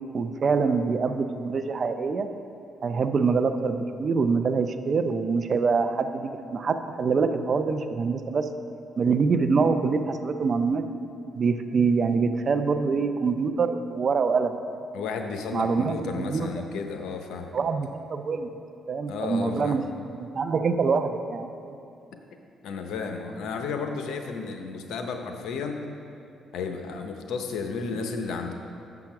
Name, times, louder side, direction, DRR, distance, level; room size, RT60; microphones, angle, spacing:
voice 1, 0.1-2.3 2.8-8.5 9.0-10.8 11.3-14.8 15.5-16.5 17.5-18.5 18.9-19.8 20.2-21.5, right 5 dB, 45° right, 9 dB, 0.5 m, -25 dB
voice 2, 14.9-17.5 19.1-19.8 22.6-25.8 26.5-28.5, left 4 dB, 80° left, 5 dB, 0.7 m, -33 dB
7.3 x 5.9 x 5.9 m, 2.6 s
cardioid pair, 90°, 0 cm